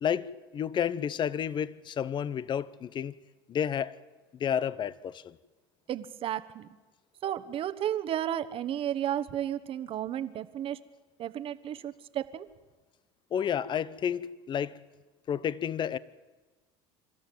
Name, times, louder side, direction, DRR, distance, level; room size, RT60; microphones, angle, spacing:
voice 1, 0.0-3.1 3.5-3.9 4.4-5.4 13.3-14.8 15.3-16.0, left 8 dB, 40° left, 0.9 m, -31 dB
voice 2, 5.9-6.7 7.2-10.8 11.2-12.5, right 11 dB, 50° right, 1.2 m, -33 dB
26.5 x 13.5 x 9.4 m
supercardioid pair, 90°, 12 cm